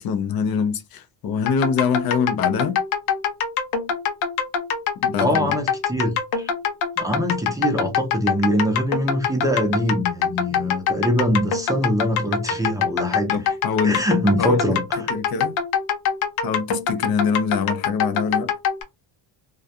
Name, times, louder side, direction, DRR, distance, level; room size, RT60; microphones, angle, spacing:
voice 1, 0.0-2.8 5.0-5.5 13.3-14.0 14.4-14.6 15.0-15.5 16.4-18.5, left 6 dB, 55° left, 0.5 m, -24 dB
sound 1, 1.5-18.8, left 6 dB, 90° left, 0.7 m, -24 dB
voice 2, 5.2-6.5 7.0-13.5 13.8-14.8, equal, 10° right, 0.5 m, -23 dB
2.4 x 2.2 x 2.6 m
cardioid pair, 110°, 46 cm